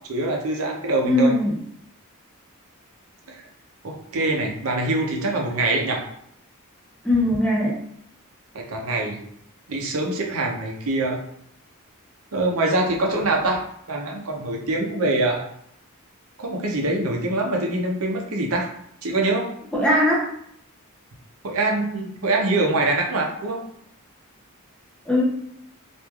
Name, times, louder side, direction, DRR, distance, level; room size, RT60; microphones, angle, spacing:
voice 1, 0.1-1.3 3.3-3.4 3.8-6.0 8.5-9.2 9.7-11.2 12.3-13.6 13.9-15.4 16.4-18.7 19.0-19.5 21.4-23.6, right 2 dB, 70° right, 1 dB, 0.6 m, -24 dB
voice 2, 1.0-1.6 7.0-7.8 19.7-20.3 25.1-25.2, left 1 dB, 5° left, -4 dB, 0.5 m, -20 dB
3.1 x 2.4 x 2.3 m, 0.70 s
head